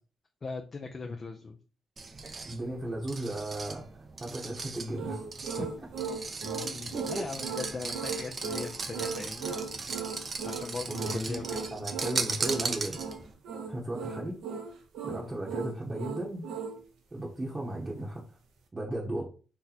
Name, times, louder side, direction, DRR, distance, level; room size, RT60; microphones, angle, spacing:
voice 1, 0.4-1.6 5.6-5.7 6.4-9.5 10.4-11.7, left 4 dB, 40° left, 3 dB, 0.4 m, -39 dB
sound 1, 2.0-13.3, right 4 dB, 40° right, 0.4 m, -37 dB
voice 2, 2.4-5.2 5.6-5.7 6.9-7.2 10.9-13.0 13.7-14.4 15.0-16.4 17.1-18.3 18.7-19.2, right 1 dB, 25° right, -4 dB, 0.9 m, -35 dB
sound 2, 4.9-16.8, right 5 dB, 85° right, 0.6 m, -37 dB
2.8 x 2.2 x 4.0 m, 0.37 s
cardioid pair, 80°, 0 cm